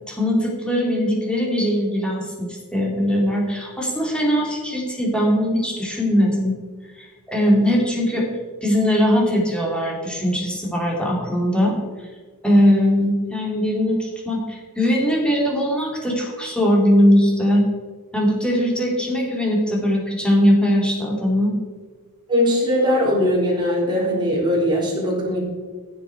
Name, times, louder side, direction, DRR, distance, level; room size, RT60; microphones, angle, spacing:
voice 1, 0.1-6.6 7.0-8.3 8.6-11.8 12.4-17.6 18.1-21.5, equal, 5° left, -3 dB, 2.7 m, -20 dB
voice 2, 22.3-25.4, equal, 20° right, -4 dB, 3.7 m, -20 dB
15.0 x 7.6 x 4.7 m, 1.4 s
head